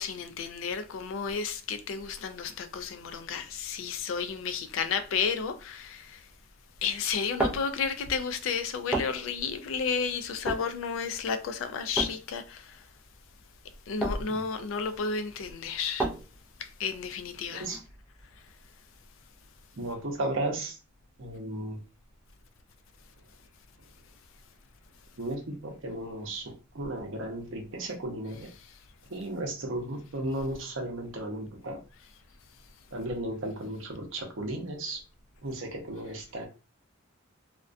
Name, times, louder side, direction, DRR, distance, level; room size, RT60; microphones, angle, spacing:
voice 1, 0.0-6.3 6.8-12.8 13.9-16.1 16.6-17.7 28.3-28.8, left 6 dB, 70° left, 0.3 m, -32 dB
sound 1, 7.0-18.5, right 2 dB, 5° right, 0.4 m, -36 dB
voice 2, 19.8-20.7 21.2-21.8 25.2-28.5 29.1-31.8 32.9-35.0 35.4-36.5, right 1 dB, 70° right, 0.7 m, -35 dB
2.4 x 2.1 x 2.4 m
head